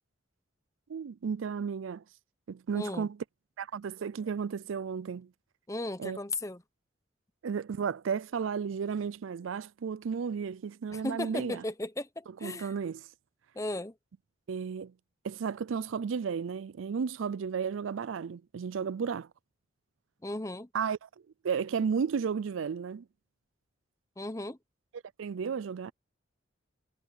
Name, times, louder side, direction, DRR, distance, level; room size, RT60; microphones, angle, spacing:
voice 1, 0.9-2.0 2.5-3.2 3.6-5.3 6.0-6.2 7.4-11.6 12.4-13.1 14.5-14.9 15.2-19.3 20.7-21.1 21.4-23.1 24.9-25.9, right 6 dB, 90° right, 0.4 m, -33 dB
voice 2, 2.7-3.1 5.7-6.6 10.9-12.7 13.5-13.9 20.2-20.7 24.2-24.6, left 2 dB, 15° left, 0.9 m, -36 dB
head